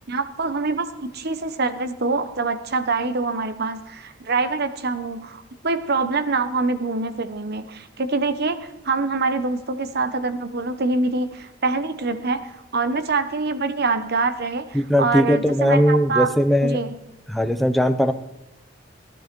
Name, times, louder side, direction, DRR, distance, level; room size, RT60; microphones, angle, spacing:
voice 1, 0.1-16.3 16.6-17.0, right 3 dB, 55° right, 11 dB, 1.1 m, -25 dB
voice 2, 14.7-16.8 17.3-18.1, equal, ahead, 8 dB, 0.8 m, -19 dB
19.0 x 12.0 x 4.6 m, 0.98 s
head